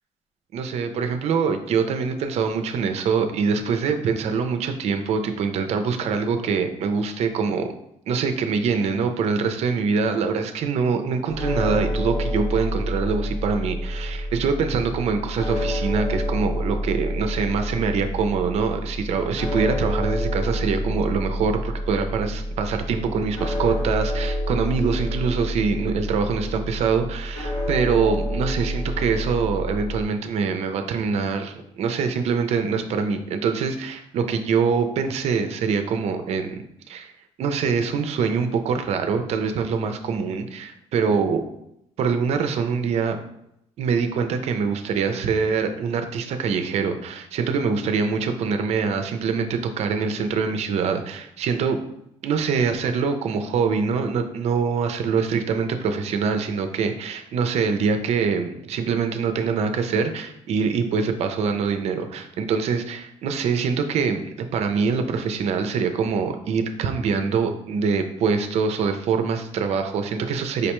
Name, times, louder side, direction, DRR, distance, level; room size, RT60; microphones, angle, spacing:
voice 1, 0.5-7.7 8.1-37.1 37.4-41.5 42.0-43.2 43.8-51.8 52.2-70.7, right 5 dB, 60° right, 7 dB, 0.4 m, -24 dB
sound 1, 11.3-30.0, equal, 55° left, 1.4 m, -28 dB
5.0 x 2.1 x 2.9 m, 0.79 s
cardioid pair, 125°, 12 cm